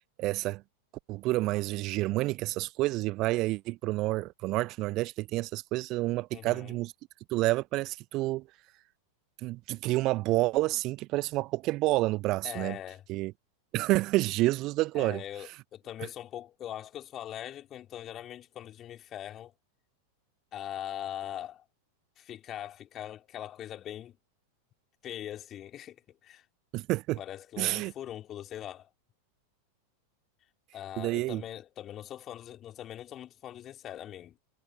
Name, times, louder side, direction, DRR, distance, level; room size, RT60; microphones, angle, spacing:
voice 1, 0.2-0.6 1.1-6.9 7.3-8.4 9.4-12.8 13.1-13.3 13.7-15.2 26.7-27.2 27.6-27.9 31.0-31.4, right 19 dB, 40° right, 1.1 m, -29 dB
voice 2, 6.3-6.8 12.4-13.0 15.0-19.5 20.5-21.6 22.2-24.2 25.0-26.0 26.2-26.4 27.2-28.9 30.7-34.4, left 11 dB, 30° left, 4.0 m, -41 dB
figure-of-eight pair, 90°, 0 cm